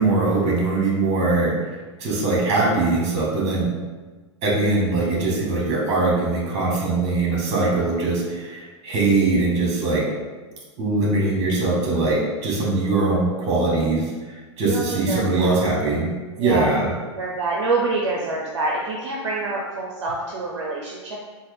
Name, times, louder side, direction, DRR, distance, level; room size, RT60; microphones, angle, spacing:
voice 1, 0.0-1.6 2.0-3.7 4.4-10.1 10.8-14.1 14.6-16.1 16.4-16.9, right 3 dB, 45° right, -3 dB, 1.5 m, -21 dB
voice 2, 14.6-15.6 16.4-16.8 17.2-21.2, right 3 dB, 70° right, -3 dB, 0.6 m, -26 dB
3.9 x 2.2 x 3.4 m, 1.3 s
hypercardioid pair, 105°, 15 cm